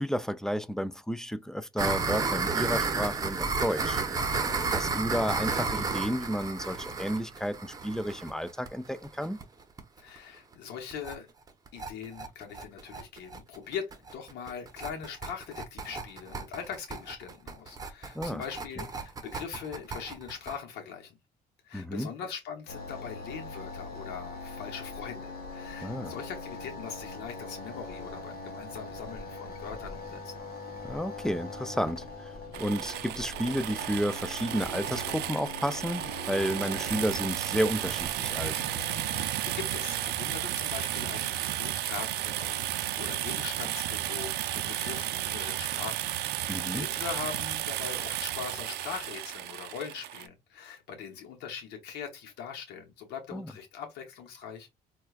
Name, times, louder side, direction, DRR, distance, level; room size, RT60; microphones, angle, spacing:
voice 1, 0.0-4.0 4.7-9.4 18.2-18.4 18.8-18.9 21.7-22.1 25.8-26.1 30.8-32.3 32.6-38.5 46.5-46.9 53.3-53.5, equal, 5° left, 0.3 m, -31 dB
sound 1, 1.8-9.4 9.8-9.9 10.2-10.3 10.5-10.6 10.9-11.1 11.5-20.6, right 4 dB, 20° right, 0.8 m, -32 dB
voice 2, 10.0-11.3 11.7-21.2 21.6-30.4 38.9-46.1 46.4-54.7, left 7 dB, 80° left, 0.9 m, -41 dB
sound 2, 22.7-39.2, left 3 dB, 65° left, 1.3 m, -42 dB
sound 3, 32.5-50.3, right 13 dB, 75° right, 0.4 m, -33 dB
4.3 x 2.3 x 2.3 m
cardioid pair, 110°, 17 cm